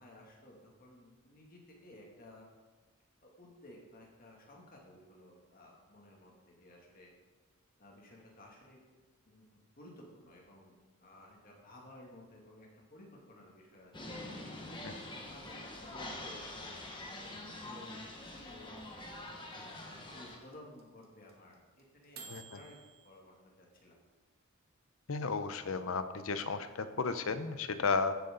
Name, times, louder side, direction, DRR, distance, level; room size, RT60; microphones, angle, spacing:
voice 1, 0.0-2.5 3.2-7.1 7.8-8.8 9.3-10.7 11.0-14.1 14.6-17.1 17.6-18.8 19.5-22.8 23.0-24.0, left 1 dB, 40° left, -1 dB, 2.4 m, -56 dB
sound 1, 13.9-20.4, left 1 dB, 20° left, 1.4 m, -45 dB
sound 2, 14.7-23.0, right 6 dB, 45° right, 1.3 m, -53 dB
voice 2, 25.1-28.1, left 4 dB, 70° left, 11 dB, 0.7 m, -33 dB
15.5 x 8.2 x 3.9 m, 1.3 s
head